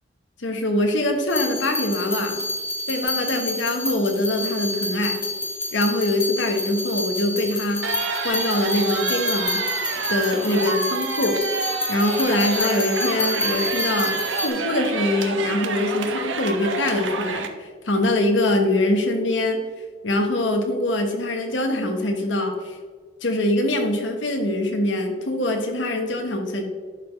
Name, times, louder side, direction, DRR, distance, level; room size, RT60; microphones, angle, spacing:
voice 1, 0.4-2.4 2.9-5.2 5.7-9.6 9.9-11.4 11.9-19.6 20.0-22.8 23.2-26.6, left 1 dB, 90° left, 4 dB, 1.2 m, -23 dB
sound 1, 1.3-14.5, left 1 dB, 15° left, 1.5 m, -29 dB
sound 2, 7.8-17.5, right 5 dB, 85° right, 0.7 m, -28 dB
11.0 x 4.2 x 3.2 m, 1.5 s
head